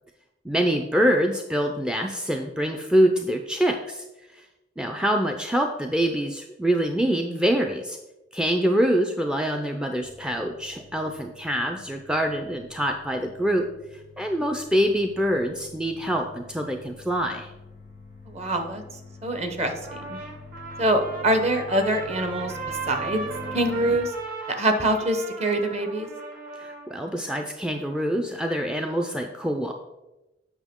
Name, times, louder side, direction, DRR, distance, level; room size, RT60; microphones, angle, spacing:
voice 1, 0.4-4.0 4.3-4.5 4.8-8.0 8.3-17.5 26.6-29.7, equal, 5° right, 3 dB, 0.4 m, -25 dB
sound 1, 10.0-23.9, left 3 dB, 75° right, 2.2 m, -45 dB
voice 2, 18.3-18.8 19.2-20.2 20.8-22.6 22.9-23.3 23.5-24.1 24.5-26.1, right 1 dB, 35° right, 6 dB, 0.9 m, -24 dB
Trumpet, 19.8-27.0, right 3 dB, 55° right, 1.6 m, -37 dB
8.2 x 6.0 x 3.6 m, 1.0 s
head